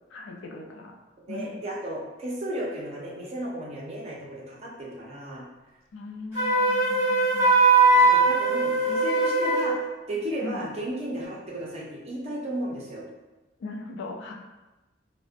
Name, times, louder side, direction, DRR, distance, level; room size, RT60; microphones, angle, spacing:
voice 1, 0.1-0.9 1.3-1.6 5.3-5.4 5.9-7.5 10.4-10.6 13.6-14.3, left 2 dB, 75° left, 2 dB, 0.3 m, -39 dB
voice 2, 1.3-5.4 7.9-9.8 10.1-13.0, right 1 dB, 35° right, -4 dB, 0.5 m, -34 dB
Wind instrument woodwind instrument, 6.3-9.8, right 3 dB, 15° right, 1.1 m, -20 dB
2.4 x 2.0 x 2.4 m, 1.1 s
head